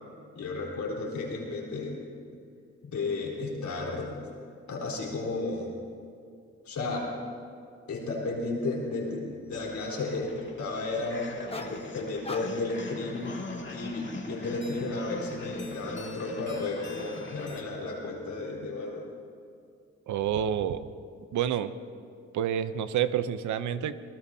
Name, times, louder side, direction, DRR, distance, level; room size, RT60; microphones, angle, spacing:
voice 1, 0.3-2.0 2.8-4.2 4.7-5.7 6.7-7.1 7.9-13.3 13.7-19.0, left 3 dB, 75° left, -3 dB, 4.1 m, -33 dB
sound 1, 9.5-17.6, left 3 dB, 40° left, 2.3 m, -43 dB
sound 2, 11.5-11.9 12.2-12.8 13.3-13.6, left 2 dB, 20° left, 1.2 m, -40 dB
voice 2, 20.1-20.9 21.3-21.7 22.3-24.0, right 9 dB, 85° right, 13 dB, 0.7 m, -28 dB
25.0 x 19.0 x 2.8 m, 2.3 s
cardioid pair, 75°, 29 cm